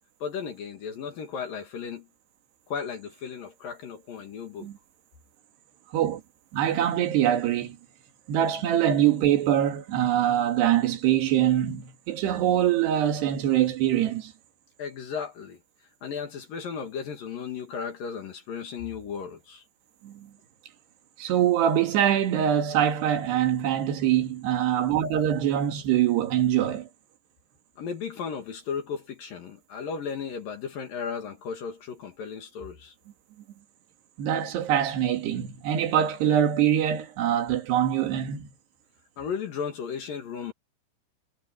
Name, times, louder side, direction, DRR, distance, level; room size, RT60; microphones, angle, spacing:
voice 1, 0.2-2.1 2.7-4.7 14.8-15.6 16.0-19.6 27.8-32.9 39.2-40.5, left 6 dB, 55° left, 3.0 m, -35 dB
voice 2, 6.5-7.8 8.3-14.3 20.0-20.3 21.2-26.9 34.2-38.5, right 10 dB, 60° right, 4.0 m, -24 dB
omnidirectional pair, 5.9 m